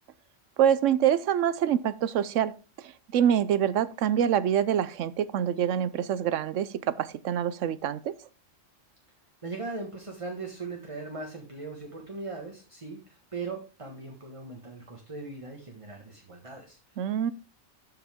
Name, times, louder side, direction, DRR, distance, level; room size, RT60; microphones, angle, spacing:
voice 1, 0.6-8.1 17.0-17.3, right 9 dB, 80° right, 1.0 m, -26 dB
voice 2, 9.4-17.1, right 3 dB, 25° right, 1.5 m, -39 dB
13.0 x 5.8 x 3.6 m
omnidirectional pair, 1.3 m